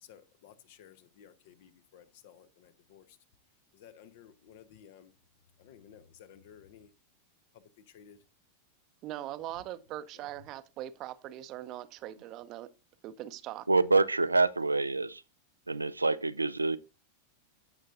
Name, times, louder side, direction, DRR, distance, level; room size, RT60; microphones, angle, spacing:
voice 1, 0.0-3.2 3.7-5.1 5.6-6.9 7.5-8.2 10.1-10.3, left 9 dB, 50° left, 0.9 m, -55 dB
voice 2, 9.0-12.7 13.0-13.7, right 13 dB, 40° right, 0.7 m, -41 dB
voice 3, 13.7-15.2 15.7-16.8, right 3 dB, 80° right, 0.4 m, -26 dB
15.5 x 5.5 x 2.6 m
figure-of-eight pair, 90°, 0 cm